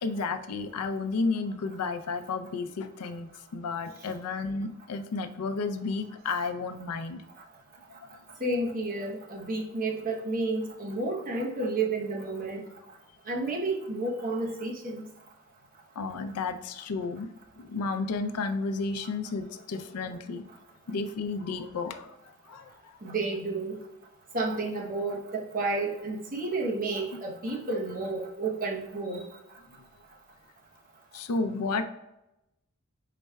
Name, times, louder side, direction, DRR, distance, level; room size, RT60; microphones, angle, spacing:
voice 1, 0.0-7.2 8.0-8.1 16.0-17.3 17.6-20.4 20.9-23.0 31.1-31.8, left 4 dB, 85° left, 8 dB, 0.4 m, -32 dB
voice 2, 8.4-12.6 13.3-15.0 19.0-19.1 23.0-23.8 24.3-29.3, right 2 dB, 40° right, -2 dB, 0.9 m, -31 dB
4.5 x 4.1 x 2.2 m, 0.90 s
head